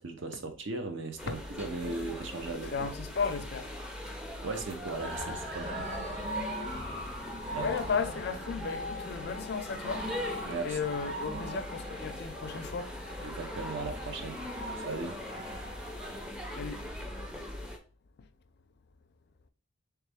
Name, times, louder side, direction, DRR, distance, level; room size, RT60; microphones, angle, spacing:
voice 1, 0.0-2.9 4.4-5.9 7.5-7.7 10.5-10.8 11.2-11.6 13.2-14.4 14.7-15.2, right 3 dB, 60° right, 0.6 m, -38 dB
sound 1, 1.2-17.8, left 1 dB, 5° right, 0.5 m, -41 dB
voice 2, 2.7-3.7 6.3-6.6 7.6-10.1 10.6-12.9 16.6-16.9, left 5 dB, 50° left, 0.4 m, -34 dB
sound 2, 5.0-16.3, equal, 35° right, 1.7 m, -40 dB
3.4 x 3.2 x 3.4 m
head